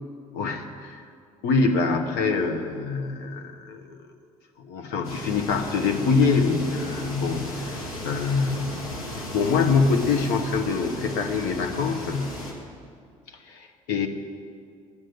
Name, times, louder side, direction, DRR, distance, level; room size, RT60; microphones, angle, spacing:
voice 1, 0.3-1.0 1.4-4.0 4.6-7.8 8.0-8.8 9.3-12.3 13.5-14.1, left 4 dB, 65° left, 5 dB, 1.2 m, -24 dB
sound 1, 5.0-12.5, left 1 dB, 80° left, 1.9 m, -36 dB
10.5 x 7.7 x 9.5 m, 2.2 s
figure-of-eight pair, 55°, 18 cm